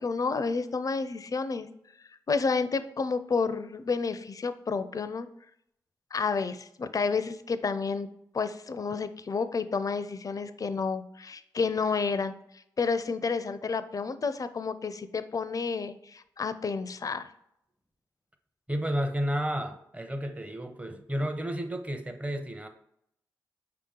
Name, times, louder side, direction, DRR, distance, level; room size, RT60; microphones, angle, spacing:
voice 1, 0.0-1.7 2.3-5.3 6.1-8.1 8.3-12.3 12.8-17.3, left 4 dB, 45° left, 12 dB, 0.4 m, -30 dB
voice 2, 18.7-22.7, equal, 15° right, 6 dB, 0.7 m, -31 dB
4.9 x 2.9 x 3.7 m, 0.74 s
supercardioid pair, 40°, 8 cm